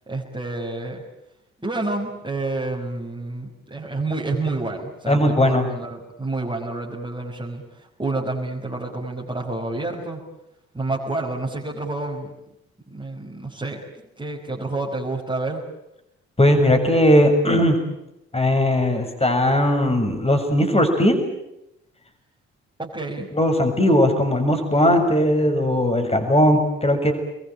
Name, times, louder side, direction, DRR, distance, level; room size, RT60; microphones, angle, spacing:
voice 1, 0.1-1.0 1.6-7.6 8.0-10.2 10.7-12.3 12.9-13.8 14.2-15.6 22.8-23.3 24.8-25.0, right 2 dB, 15° right, -4 dB, 6.1 m, -29 dB
voice 2, 5.1-5.7 16.4-17.8 18.3-21.2 23.3-27.1, left 1 dB, 20° left, 6 dB, 6.8 m, -18 dB
27.5 x 22.5 x 9.0 m, 0.84 s
hypercardioid pair, 40°, 33 cm